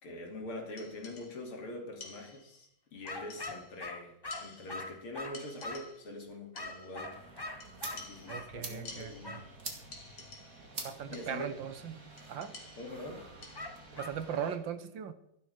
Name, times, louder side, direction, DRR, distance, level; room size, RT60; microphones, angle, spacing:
voice 1, 0.0-7.2 7.9-9.4 11.1-11.6 12.8-13.3, left 2 dB, 75° left, 1 dB, 3.6 m, -44 dB
sound 1, 0.8-1.6 2.0-2.7 3.1-3.9 4.3-5.0 5.3-6.2 6.6-7.1 7.6-9.6 9.9-10.8 11.1-11.6 12.2-13.9, left 3 dB, 55° left, 2.8 m, -52 dB
sound 2, 3.0-6.0 6.5-8.5 9.2-9.5 13.5-14.2, left 2 dB, 30° left, 0.4 m, -43 dB
sound 3, 7.1-14.6, right 3 dB, 40° right, 2.6 m, -48 dB
voice 2, 8.3-9.4 10.8-12.0 12.3-12.5 14.0-15.1, right 8 dB, 65° right, 12 dB, 1.5 m, -38 dB
13.0 x 12.0 x 5.0 m, 0.78 s
omnidirectional pair, 2.4 m